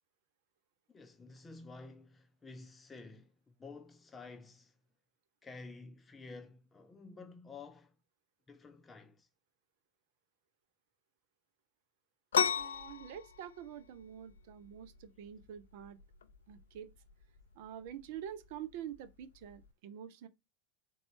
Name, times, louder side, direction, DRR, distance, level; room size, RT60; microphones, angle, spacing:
voice 1, 0.9-3.3 3.6-4.7 5.4-7.9 8.5-9.3, left 3 dB, 20° left, 0.5 m, -51 dB
sound 1, 12.3-19.7, left 7 dB, 75° left, 0.3 m, -38 dB
voice 2, 12.6-16.0 16.5-16.9 17.6-20.3, right 9 dB, 60° right, 0.5 m, -46 dB
3.9 x 2.2 x 3.0 m
figure-of-eight pair, 80°, 0 cm